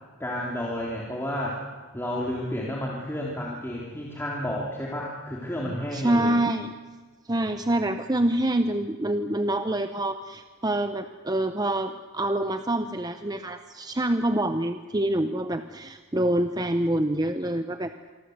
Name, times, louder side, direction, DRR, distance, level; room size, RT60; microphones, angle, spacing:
voice 1, 0.2-1.6 1.9-6.4, left 1 dB, 10° left, -4 dB, 3.2 m, -31 dB
voice 2, 5.9-6.8 7.3-17.9, right 1 dB, 20° right, 8 dB, 0.8 m, -26 dB
26.5 x 24.5 x 8.0 m, 1.5 s
head